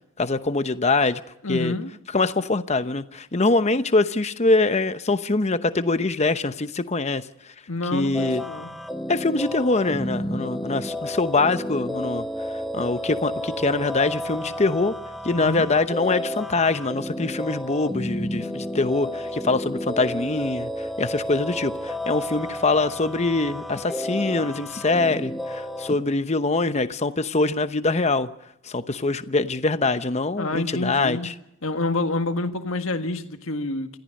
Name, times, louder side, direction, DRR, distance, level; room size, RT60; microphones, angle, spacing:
voice 1, 0.2-1.2 1.5-1.7 2.1-7.2 7.9-8.4 9.1-12.3 12.7-14.9 15.2-28.3 28.6-31.3, left 3 dB, 30° left, 0.9 m, -23 dB
voice 2, 1.4-1.9 7.7-8.7 15.3-15.6 30.4-31.3 31.6-34.0, left 2 dB, 65° left, 1.7 m, -28 dB
sound 1, 8.1-26.0, equal, ahead, 1.3 m, -31 dB
27.0 x 14.5 x 6.6 m
head